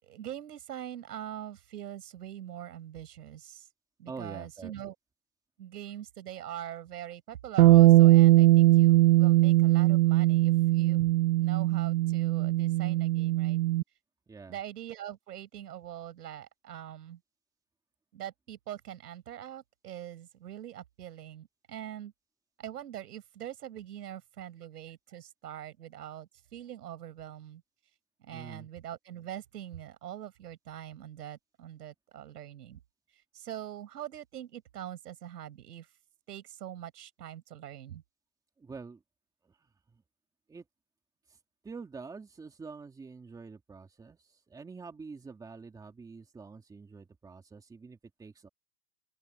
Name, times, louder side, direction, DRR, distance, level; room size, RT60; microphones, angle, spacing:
voice 1, 0.0-3.7 4.0-5.0 5.6-11.1 11.4-13.6 14.5-17.2 18.1-22.1 22.6-27.6 28.2-32.8 33.3-35.9 36.3-38.0, right 11 dB, 85° right, 6.8 m, -43 dB
voice 2, 4.1-4.7 14.3-14.6 28.3-28.7 38.6-39.0 39.9-40.0 40.5-40.6 41.6-44.2 44.5-48.5, right 4 dB, 10° right, 2.5 m, -46 dB
Bass guitar, 7.6-13.8, right 17 dB, 30° right, 0.4 m, -21 dB
open air
supercardioid pair, 160°, 46 cm